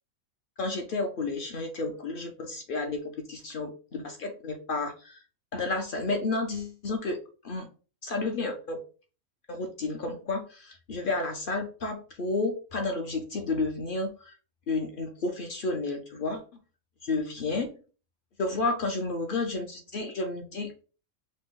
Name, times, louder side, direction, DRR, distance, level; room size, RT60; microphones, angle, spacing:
voice 1, 0.6-5.2 5.5-7.2 7.4-7.7 8.0-8.8 9.5-14.3 14.7-16.4 17.0-17.7 18.4-20.8, left 3 dB, 55° left, 4 dB, 0.6 m, -31 dB
5.1 x 2.1 x 3.6 m, 0.38 s
omnidirectional pair, 1.4 m